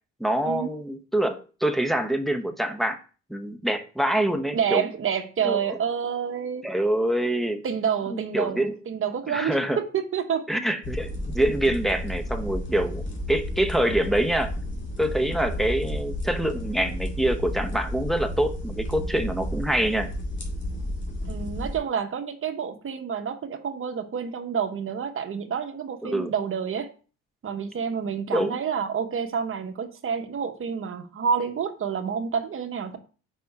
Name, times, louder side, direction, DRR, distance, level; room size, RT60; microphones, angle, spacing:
voice 1, 0.2-3.0 3.3-4.8 5.4-5.8 6.6-7.6 8.1-8.7 9.3-9.8 10.5-14.5 15.0-20.1 26.0-26.3 28.3-28.5, right 1 dB, ahead, 0.8 m, -25 dB
voice 2, 4.5-6.7 7.6-10.4 21.3-26.9 27.4-33.0, right 7 dB, 45° right, 1.1 m, -28 dB
sound 1, 10.8-21.8, equal, 40° left, 2.3 m, -32 dB
5.3 x 4.2 x 4.7 m
cardioid pair, 90°, 30 cm